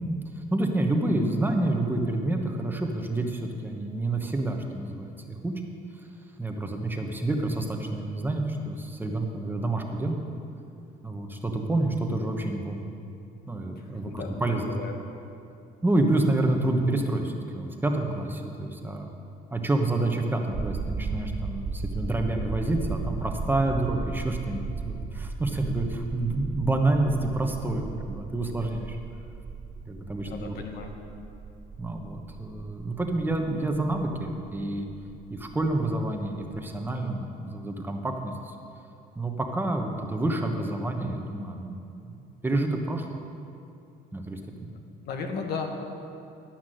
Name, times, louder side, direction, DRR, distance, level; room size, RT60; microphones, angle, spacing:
voice 1, 0.4-5.6 6.4-10.2 11.0-12.9 13.5-14.7 15.8-19.1 19.5-29.0 29.9-30.5 31.8-34.9 35.3-38.5 39.1-41.8 42.0-43.1 44.1-44.7, right 2 dB, 10° right, 3 dB, 1.1 m, -28 dB
voice 2, 13.8-14.9 30.2-30.9 45.0-45.7, left 5 dB, 70° left, 4 dB, 1.4 m, -35 dB
sound 1, 20.5-36.6 36.9-37.0, right 4 dB, 30° right, 0.6 m, -36 dB
11.5 x 5.9 x 7.7 m, 2.6 s
cardioid pair, 110°, 17 cm